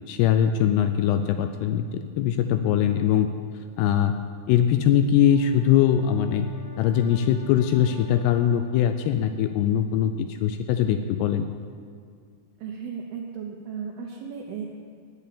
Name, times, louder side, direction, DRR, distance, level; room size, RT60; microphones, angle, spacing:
voice 1, 0.1-3.3 3.8-4.2 4.5-6.5 6.8-11.5, left 9 dB, 85° left, 8 dB, 2.4 m, -22 dB
Brass instrument, 5.1-9.3, equal, 45° left, 2.7 m, -50 dB
voice 2, 12.6-14.7, right 6 dB, 75° right, -1 dB, 2.6 m, -35 dB
9.5 x 8.1 x 8.5 m, 2.2 s
omnidirectional pair, 5.1 m